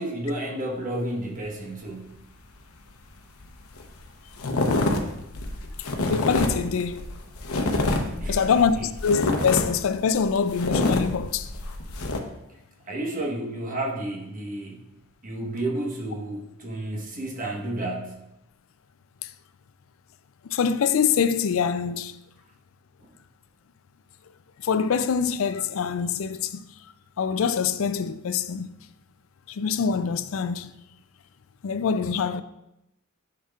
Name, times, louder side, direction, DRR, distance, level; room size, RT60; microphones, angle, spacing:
voice 1, 0.0-2.2 8.2-8.8 12.9-14.8 15.2-18.2 23.0-23.1, right 1 dB, 40° right, 1.2 m, -31 dB
sound 1, 3.4-3.5 3.7-4.0 4.4-12.2, left 2 dB, 85° left, 0.8 m, -27 dB
voice 2, 6.1-7.0 8.3-11.5 20.5-22.1 24.6-26.6 27.2-28.7 29.5-30.7 31.6-32.4, left 6 dB, 65° left, 0.4 m, -24 dB
10.0 x 5.9 x 2.4 m
head